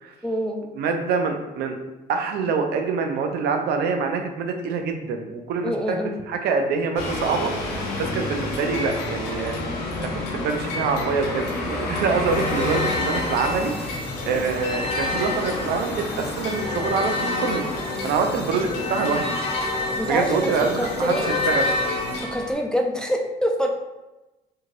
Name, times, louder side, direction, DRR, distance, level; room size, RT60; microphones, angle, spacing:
voice 1, 0.2-0.6 5.6-6.2 20.0-20.5 20.8-21.3 22.3-23.7, equal, 5° left, 1 dB, 0.3 m, -25 dB
voice 2, 0.7-1.8 2.1-6.0 6.3-7.5 8.0-9.6 10.0-13.7 14.2-17.6 18.0-19.4 20.0-21.7, right 5 dB, 75° right, 5 dB, 0.4 m, -25 dB
sound 1, 7.0-22.5, left 2 dB, 85° left, 0.6 m, -31 dB
sound 2, 12.3-22.2, left 3 dB, 35° left, 0.8 m, -29 dB
2.9 x 2.7 x 2.5 m, 1.0 s
cardioid pair, 110°, 17 cm